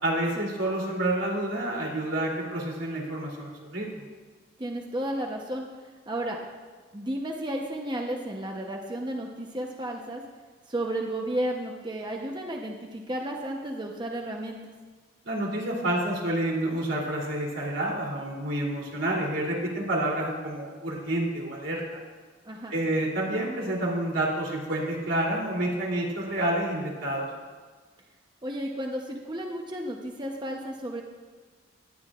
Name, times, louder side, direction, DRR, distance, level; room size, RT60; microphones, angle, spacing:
voice 1, 0.0-3.9 15.2-22.0 22.7-27.3, right 1 dB, 85° right, -3 dB, 3.1 m, -29 dB
voice 2, 4.6-5.7 6.1-6.4 6.9-10.2 10.7-14.6 22.4-22.7 28.4-31.0, right 1 dB, 25° right, 0 dB, 0.9 m, -33 dB
18.5 x 11.0 x 2.5 m, 1.4 s
head